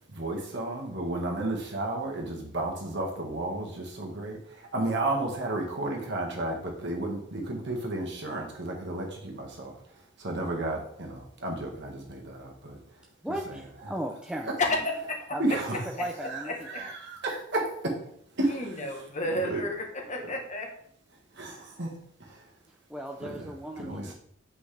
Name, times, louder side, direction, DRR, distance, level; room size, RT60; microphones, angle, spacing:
voice 1, 0.1-12.8 13.5-13.6 15.4-15.8 16.2-18.0 18.4-19.0 19.4-19.6 20.2-20.3 21.3-21.9 22.2-22.5 23.2-24.1, right 2 dB, 65° right, 0 dB, 1.7 m, -33 dB
voice 2, 13.2-14.6 15.3-15.6 15.9-16.9 22.9-24.1, right 1 dB, 5° right, 0 dB, 0.5 m, -36 dB
voice 3, 14.6-15.2 16.4-16.8 18.5-20.7, left 1 dB, 40° left, 2 dB, 1.3 m, -31 dB
8.1 x 5.3 x 3.4 m, 0.66 s
head